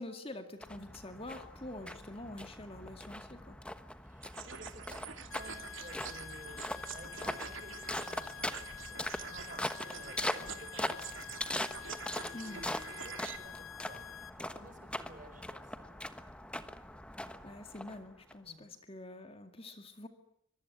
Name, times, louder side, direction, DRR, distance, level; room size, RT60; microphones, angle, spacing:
voice 1, 0.0-3.6 12.3-12.7 17.4-20.1, left 1 dB, 25° left, 7 dB, 2.1 m, -46 dB
sound 1, 0.6-18.3, left 1 dB, 5° left, 1.2 m, -41 dB
voice 2, 4.0-11.6 12.2-16.0 18.4-18.7, right 1 dB, 40° right, 8 dB, 5.1 m, -54 dB
sound 2, 4.2-13.4, right 7 dB, 65° right, 2.9 m, -47 dB
sound 3, 5.3-14.3, left 10 dB, 75° left, 2.2 m, -48 dB
25.5 x 23.0 x 9.6 m, 0.71 s
head